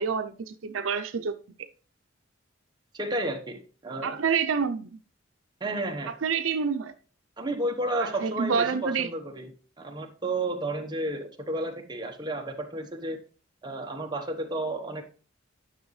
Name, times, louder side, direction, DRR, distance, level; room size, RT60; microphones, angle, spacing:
voice 1, 0.0-1.4 4.0-5.0 6.1-6.9 8.0-9.1, right 6 dB, 80° right, 0.6 m, -28 dB
voice 2, 2.9-4.2 5.6-6.1 7.4-9.5 9.8-13.2 13.6-15.0, right 2 dB, 20° right, 1.0 m, -32 dB
10.0 x 6.0 x 3.2 m
head